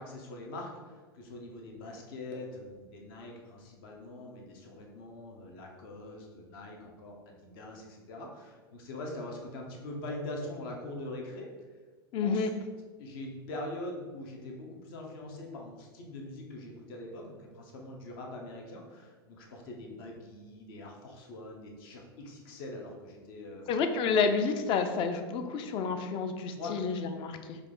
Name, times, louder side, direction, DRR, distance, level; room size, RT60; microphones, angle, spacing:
voice 1, 0.0-11.5 12.2-12.5 13.0-23.7 26.6-26.7, left 1 dB, 65° left, 0 dB, 1.0 m, -43 dB
voice 2, 12.1-12.5 23.7-27.6, left 5 dB, 40° left, 8 dB, 0.5 m, -29 dB
4.7 x 2.6 x 3.8 m, 1.4 s
hypercardioid pair, 110°, 13 cm